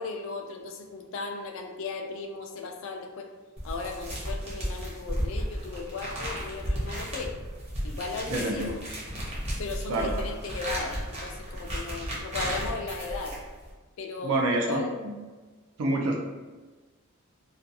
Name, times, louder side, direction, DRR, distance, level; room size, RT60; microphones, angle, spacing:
voice 1, 0.0-3.3 3.6-7.3 7.8-8.8 9.6-13.4 14.0-15.0, left 4 dB, 60° left, 3 dB, 0.3 m, -36 dB
sound 1, 3.6-13.7, equal, 30° right, 0.7 m, -34 dB
voice 2, 8.3-8.7 9.9-10.2 14.2-15.1 15.8-16.2, right 2 dB, 70° right, 0 dB, 0.3 m, -27 dB
2.4 x 2.3 x 2.6 m, 1.3 s
head